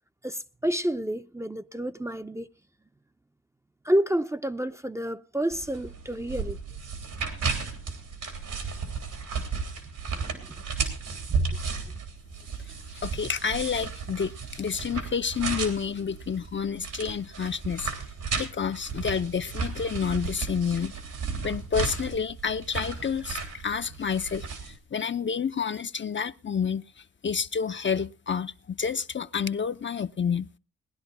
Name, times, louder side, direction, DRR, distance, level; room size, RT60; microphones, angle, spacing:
voice 1, 0.2-2.5 3.8-6.6 10.3-10.6 11.3-11.4, right 1 dB, 10° right, 0.6 m, -29 dB
sound 1, 5.5-24.8, right 5 dB, 85° right, 3.5 m, -34 dB
voice 2, 12.9-17.9 18.4-20.9 21.4-24.5 24.9-26.8 27.2-30.5, left 6 dB, 40° left, 0.6 m, -29 dB
19.0 x 10.5 x 4.1 m
cardioid pair, 55°, 31 cm